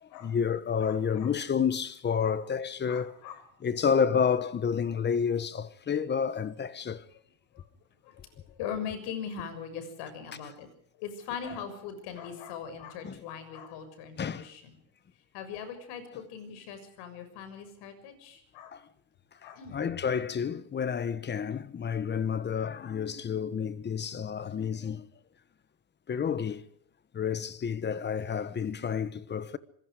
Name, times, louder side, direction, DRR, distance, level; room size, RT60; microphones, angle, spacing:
voice 1, 0.0-3.2 3.6-7.0 13.0-13.2 14.2-14.5 18.7-18.8 19.7-25.1 26.1-26.6 27.1-29.6, left 7 dB, 25° left, 1.3 m, -30 dB
voice 2, 0.8-1.3 2.2-2.4 2.9-3.4 7.5-7.6 8.0-10.7 11.0-14.7 15.3-18.7 19.4-19.8, left 7 dB, 75° left, 6.8 m, -40 dB
25.5 x 22.0 x 5.1 m
cardioid pair, 135°, 41 cm